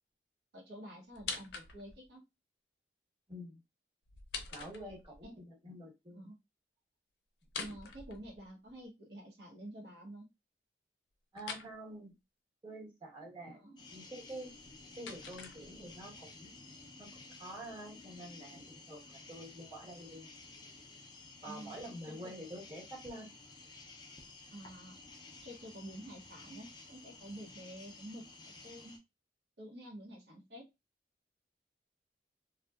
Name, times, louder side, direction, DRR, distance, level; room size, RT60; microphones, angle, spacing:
voice 1, 0.5-2.2 5.2-5.3 6.1-6.4 7.6-10.3 13.5-13.8 21.5-21.7 22.0-22.3 24.5-24.9 25.4-28.3 28.6-29.0 29.6-30.7, equal, 70° right, -2 dB, 0.8 m, -49 dB
sound 1, 1.1-2.1 4.1-5.3 7.4-8.7 11.4-11.7 14.4-16.1, left 5 dB, 85° left, 0.5 m, -45 dB
voice 2, 3.3-3.6 4.5-6.3 7.6-7.7 11.3-12.1 12.6-13.6 13.9-14.5 14.9-16.5 17.0-20.3 21.4-23.3, right 1 dB, 25° right, -3 dB, 1.1 m, -47 dB
sound 2, 13.8-29.0, left 3 dB, 25° left, 0.4 m, -53 dB
2.7 x 2.1 x 2.2 m, 0.23 s
head